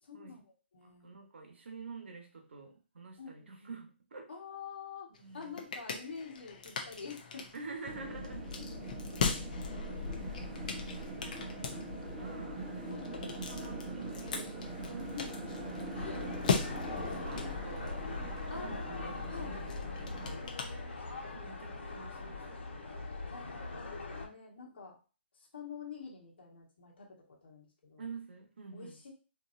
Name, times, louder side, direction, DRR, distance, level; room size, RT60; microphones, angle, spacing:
voice 1, 0.0-1.1 3.2-3.7 4.3-7.5 8.5-8.8 9.8-10.0 12.9-13.1 15.1-15.4 18.5-19.0 19.3-19.6 23.3-25.0 25.3-28.1 28.7-29.1, left 5 dB, 60° left, -2 dB, 1.5 m, -47 dB
voice 2, 0.8-4.3 5.1-5.6 7.5-8.6 10.8-12.6 13.2-15.3 16.1-18.0 18.5-20.6 21.3-22.7 28.0-29.0, right 4 dB, 75° right, 4 dB, 1.1 m, -49 dB
sound 1, 5.1-21.4, left 6 dB, 40° left, 0.6 m, -40 dB
sound 2, 7.9-20.3, right 1 dB, 5° right, 0.9 m, -42 dB
sound 3, 15.9-24.3, left 3 dB, 80° left, 1.2 m, -42 dB
4.4 x 2.8 x 2.6 m, 0.35 s
hypercardioid pair, 170°, 6 cm